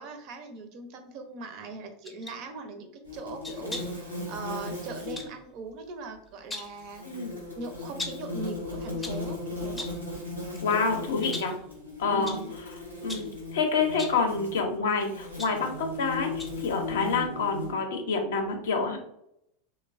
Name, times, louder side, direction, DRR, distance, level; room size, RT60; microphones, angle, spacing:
voice 1, 0.0-7.0 7.5-9.9 12.1-12.5, right 3 dB, 45° right, 6 dB, 0.4 m, -40 dB
sound 1, 2.0-2.4 3.4-4.0 5.2-5.4 6.3-6.8 8.0-8.3 8.8-9.3 9.8-10.1 10.5-10.7 11.2-11.6 12.3-12.5 13.1-13.4 13.9-14.3 15.0-16.0 16.4-16.7 17.0-17.1, left 2 dB, 10° left, 0.5 m, -40 dB
sound 2, 3.0-5.3 6.6-17.7, left 2 dB, 90° right, 0.8 m, -37 dB
voice 2, 10.6-11.6 12.0-12.4 13.0-19.0, left 4 dB, 65° left, 4 dB, 0.5 m, -28 dB
3.1 x 2.1 x 2.3 m, 0.75 s
figure-of-eight pair, 85°, 0 cm